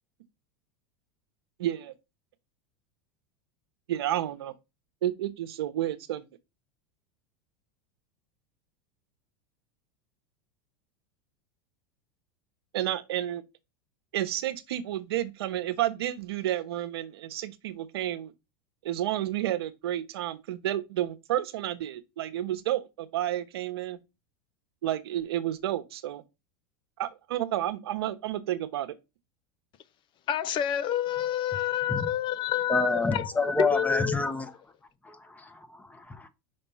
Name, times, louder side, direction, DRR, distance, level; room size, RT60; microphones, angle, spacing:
voice 1, 1.6-1.9 3.9-4.5 5.0-6.2 12.7-13.4 14.1-18.3 18.8-24.0 24.8-26.2 27.0-28.9, right 13 dB, 85° right, 1.0 m, -31 dB
voice 2, 30.3-33.3 33.6-34.2, left 11 dB, 40° left, 0.7 m, -28 dB
voice 3, 32.7-34.5 35.0-36.3, left 3 dB, 10° left, 1.1 m, -28 dB
5.4 x 4.4 x 5.6 m
supercardioid pair, 115°, 13 cm